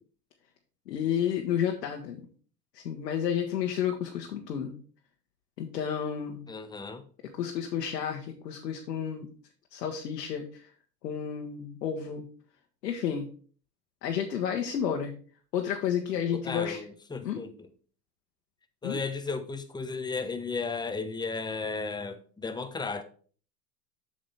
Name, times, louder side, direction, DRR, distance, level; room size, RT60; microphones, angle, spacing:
voice 1, 0.9-2.2 2.7-4.8 5.6-6.4 7.4-9.3 9.7-10.7 11.0-12.3 12.8-13.3 14.0-15.1 15.5-16.8 17.2-17.4 18.8-19.0, left 8 dB, 75° left, 1.2 m, -31 dB
voice 2, 6.5-7.0 16.1-17.7 18.8-23.0, left 4 dB, 10° left, 0.8 m, -34 dB
7.5 x 6.5 x 3.4 m
hypercardioid pair, 85°, 49 cm